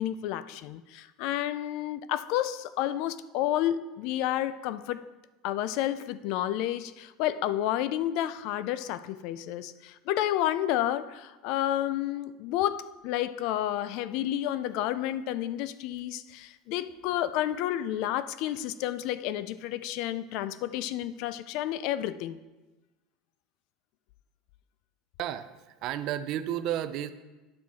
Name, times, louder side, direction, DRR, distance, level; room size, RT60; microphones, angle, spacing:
voice 1, 0.0-5.0 5.4-22.4, left 12 dB, 55° left, 15 dB, 0.3 m, -30 dB
voice 2, 25.2-27.1, right 11 dB, 40° right, 12 dB, 0.4 m, -32 dB
9.4 x 6.4 x 4.1 m, 1.1 s
cardioid pair, 170°, 0 cm